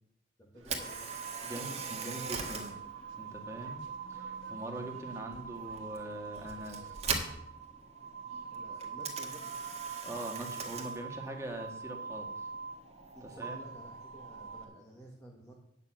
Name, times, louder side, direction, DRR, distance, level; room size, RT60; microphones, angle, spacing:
voice 1, 0.4-1.1 8.2-9.5 13.1-15.5, right 1 dB, 15° left, -1 dB, 1.5 m, -52 dB
sound 1, 0.5-7.0, right 3 dB, 80° right, 1.6 m, -58 dB
Camera, 0.6-14.6, right 5 dB, 35° right, 1.6 m, -43 dB
sound 2, 0.8-14.6, right 6 dB, 50° right, 1.8 m, -44 dB
voice 2, 1.4-2.8 3.2-3.8 4.1-7.0 10.0-12.5 13.2-13.6, right 1 dB, 15° right, 2 dB, 1.7 m, -42 dB
9.3 x 6.8 x 7.7 m, 0.77 s
head